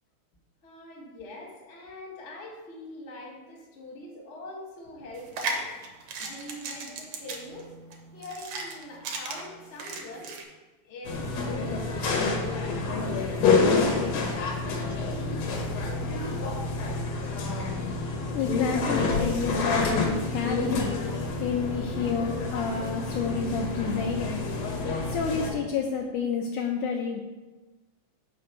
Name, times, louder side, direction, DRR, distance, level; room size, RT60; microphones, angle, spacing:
voice 1, 0.6-5.7 6.2-7.7 8.1-10.4 10.9-14.3, left 1 dB, 35° left, -2 dB, 1.1 m, -43 dB
sound 1, 5.1-10.4, right 3 dB, 70° right, 2.0 m, -36 dB
sound 2, 11.0-25.5, left 3 dB, 65° left, 1.7 m, -28 dB
voice 2, 18.3-20.9 21.4-24.4 25.1-27.2, left 6 dB, 80° left, 1 dB, 1.9 m, -29 dB
5.6 x 5.1 x 6.5 m, 1.2 s
omnidirectional pair, 4.1 m